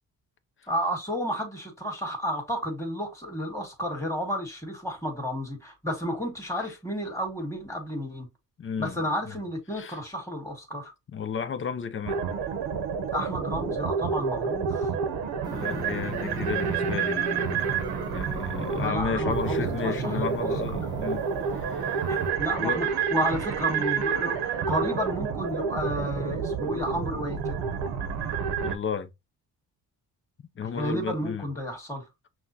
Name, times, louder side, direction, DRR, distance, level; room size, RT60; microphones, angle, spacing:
voice 1, 0.7-8.3 8.8-10.9 13.1-14.9 18.6-20.9 22.1-22.8 23.1-27.7 30.6-32.1, equal, 5° left, 2.0 m, -32 dB
voice 2, 8.6-9.4 9.8-10.0 11.1-12.2 15.5-17.3 18.1-21.2 21.5-22.1 22.6-22.9 28.6-29.1 30.6-31.5, left 6 dB, 30° left, 0.6 m, -33 dB
gipetto Noise, 12.1-28.8, right 6 dB, 85° right, 0.9 m, -29 dB
sound 1, 15.4-18.9 19.3-22.3, right 1 dB, 10° right, 1.0 m, -39 dB
5.9 x 2.4 x 2.8 m
cardioid pair, 100°, 38 cm